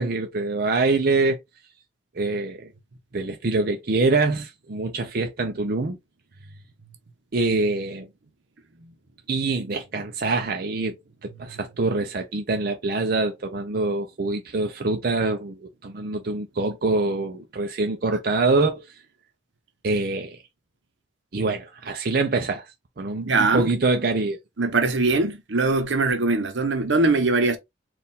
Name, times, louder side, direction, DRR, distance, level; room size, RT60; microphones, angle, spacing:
voice 1, 0.0-1.4 2.1-2.7 3.1-6.0 7.3-8.1 9.3-18.8 19.8-20.4 21.3-22.7 23.0-24.4, right 3 dB, 55° right, 0.6 m, -25 dB
voice 2, 23.2-23.7 24.6-27.6, right 3 dB, 75° right, 0.9 m, -22 dB
4.4 x 2.5 x 3.5 m
head